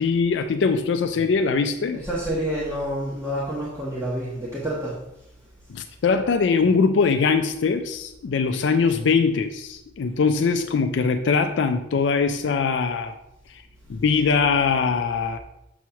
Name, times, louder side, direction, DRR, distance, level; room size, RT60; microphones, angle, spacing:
voice 1, 0.0-2.0 5.7-13.2 13.5-13.6 13.9-15.4, left 5 dB, 65° left, 7 dB, 0.4 m, -22 dB
voice 2, 1.9-5.0, right 1 dB, 15° right, -7 dB, 1.1 m, -28 dB
7.1 x 3.1 x 5.6 m, 0.86 s
head